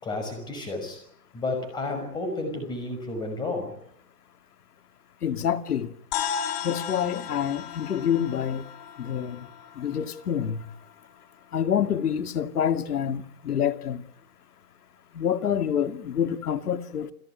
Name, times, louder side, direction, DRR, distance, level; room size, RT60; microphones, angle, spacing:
voice 1, 0.0-1.0 1.3-3.8, left 2 dB, 10° left, 5.9 m, -31 dB
voice 2, 5.2-5.9 6.6-8.6 9.0-9.4 9.8-10.6 11.5-14.0 15.1-17.1, left 8 dB, 80° left, 2.5 m, -27 dB
sound 1, 6.1-10.7, left 8 dB, 25° left, 2.1 m, -35 dB
29.0 x 15.0 x 9.5 m
hypercardioid pair, 170°, 45 cm